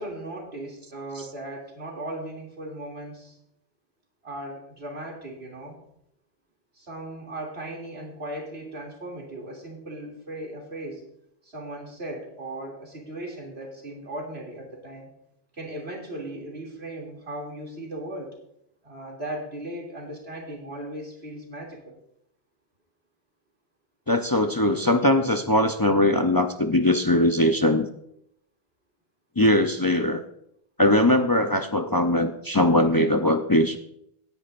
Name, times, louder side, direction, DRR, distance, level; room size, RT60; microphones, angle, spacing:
voice 1, 0.0-3.4 4.2-5.8 6.7-11.0 11.4-15.1 15.5-18.4 18.8-22.0, right 1 dB, 85° right, -1 dB, 3.1 m, -37 dB
voice 2, 24.1-27.9 29.4-30.2 30.8-33.8, left 1 dB, 30° left, 6 dB, 0.5 m, -21 dB
17.0 x 10.0 x 2.5 m, 0.75 s
omnidirectional pair, 1.0 m